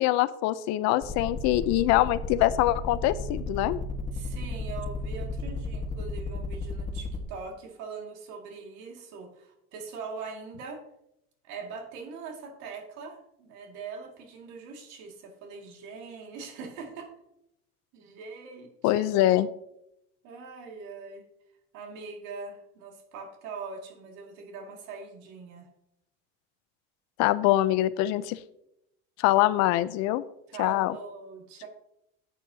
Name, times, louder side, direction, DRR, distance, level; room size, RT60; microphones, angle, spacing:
voice 1, 0.0-3.8 18.8-19.5 27.2-28.4 29.2-30.2 30.6-31.0, left 15 dB, 60° left, 16 dB, 0.6 m, -24 dB
sound 1, 1.0-7.2, left 4 dB, 25° left, 1.5 m, -33 dB
voice 2, 4.1-10.8 11.4-17.1 17.9-19.0 20.2-21.3 21.7-25.7 30.5-31.7, right 4 dB, 70° right, 2 dB, 2.2 m, -42 dB
11.0 x 8.6 x 2.8 m, 0.81 s
cardioid pair, 130°, 30 cm